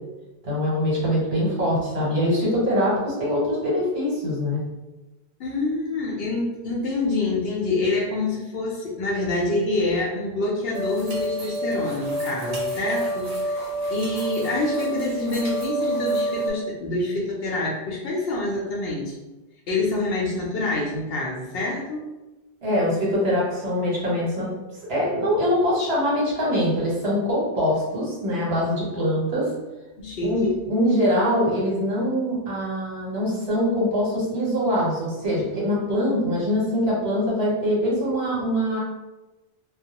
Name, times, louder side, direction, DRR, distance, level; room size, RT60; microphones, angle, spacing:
voice 1, 0.4-4.6 22.6-24.5 24.9-29.5 30.2-38.8, equal, 70° right, -5 dB, 1.2 m, -23 dB
voice 2, 5.4-19.1 19.7-22.0 30.0-30.5, left 2 dB, 70° left, -3 dB, 0.8 m, -26 dB
sound 1, 10.7-16.5, right 1 dB, 45° right, 0.6 m, -28 dB
2.3 x 2.0 x 2.8 m, 1.1 s
omnidirectional pair, 1.1 m